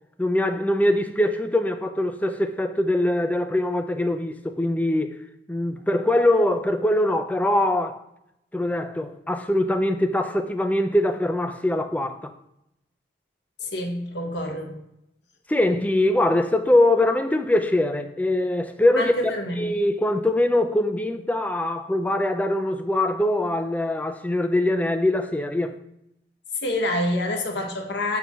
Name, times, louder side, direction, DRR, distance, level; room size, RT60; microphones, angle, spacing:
voice 1, 0.2-5.1 5.5-8.0 8.5-12.3 15.5-19.1 19.6-25.8, left 1 dB, 10° left, 0.3 m, -22 dB
voice 2, 13.6-14.8 19.0-19.7 26.6-28.2, left 1 dB, 65° left, 1.0 m, -27 dB
5.8 x 3.9 x 4.2 m
head